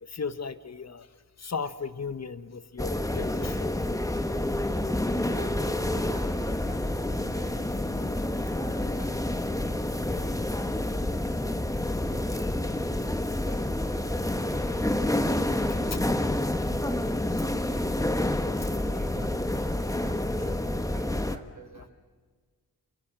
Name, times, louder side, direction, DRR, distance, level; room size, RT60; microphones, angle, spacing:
voice 1, 0.0-1.1 1.4-3.8 7.2-8.1 15.9-16.0 20.5-20.6 21.8-21.9, left 5 dB, 45° left, 12 dB, 1.4 m, -37 dB
sound 1, 2.8-21.4, left 1 dB, 10° left, 1.4 m, -28 dB
voice 2, 5.2-7.9 8.5-12.8 13.4-17.7 18.5-19.3 19.8-21.9, right 2 dB, 50° right, 2 dB, 6.5 m, -49 dB
26.5 x 26.0 x 6.1 m, 1.5 s
cardioid pair, 65°, 38 cm